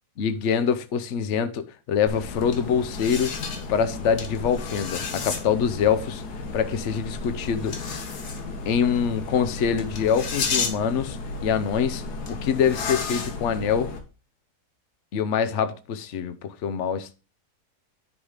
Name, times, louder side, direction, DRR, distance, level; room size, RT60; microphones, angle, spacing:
voice 1, 0.2-3.3 3.7-6.2 6.5-7.8 8.7-12.0 12.3-13.9 15.1-17.1, left 7 dB, 55° left, 1.0 m, -25 dB
sound 1, 2.1-14.0, left 4 dB, 90° left, 1.9 m, -32 dB
10.0 x 4.0 x 5.0 m
omnidirectional pair, 1.6 m